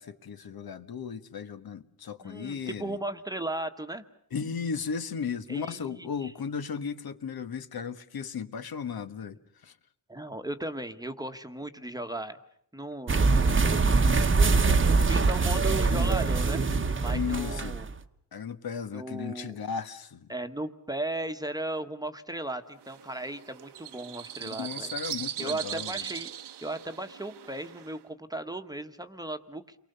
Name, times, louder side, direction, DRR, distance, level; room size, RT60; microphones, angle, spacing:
voice 1, 0.0-3.0 4.3-9.4 9.6-9.7 17.1-17.8 18.3-20.3 24.4-25.9, left 6 dB, 60° left, 1.4 m, -35 dB
voice 2, 2.2-4.0 5.5-6.3 10.1-12.4 12.7-13.6 14.5-17.9 18.9-19.5 20.3-24.9 25.4-26.3 26.6-29.7, right 1 dB, 10° right, 1.3 m, -36 dB
sound 1, 13.1-18.0, right 4 dB, 30° right, 1.1 m, -23 dB
sound 2, 22.8-28.0, right 10 dB, 80° right, 1.1 m, -39 dB
30.0 x 23.5 x 6.8 m
wide cardioid pair, 145°, 40 cm